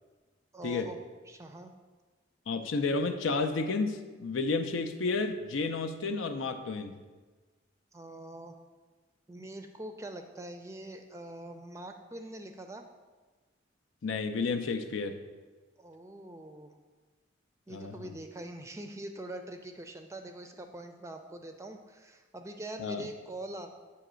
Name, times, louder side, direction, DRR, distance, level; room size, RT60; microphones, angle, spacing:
voice 1, 0.5-1.0 1.3-1.7 7.9-8.6 9.3-12.8 15.8-16.8 17.7-23.7, right 1 dB, 15° right, 6 dB, 0.4 m, -43 dB
voice 2, 2.5-6.9 14.0-15.2 17.7-18.0 22.8-23.1, left 3 dB, 90° left, 8 dB, 0.5 m, -31 dB
7.7 x 2.9 x 6.1 m, 1.3 s
head